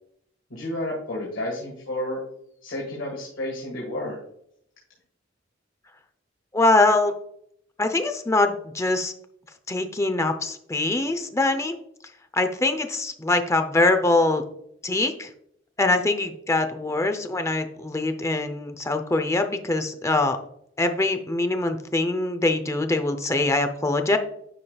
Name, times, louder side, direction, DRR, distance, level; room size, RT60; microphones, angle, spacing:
voice 1, 0.5-2.2 2.6-4.2, left 1 dB, 90° left, -3 dB, 1.7 m, -31 dB
voice 2, 6.5-7.1 7.8-9.1 9.7-11.7 12.3-14.4 14.8-15.3 15.8-20.4 20.8-24.2, left 2 dB, 15° left, 7 dB, 0.6 m, -23 dB
9.8 x 5.1 x 2.3 m, 0.71 s
head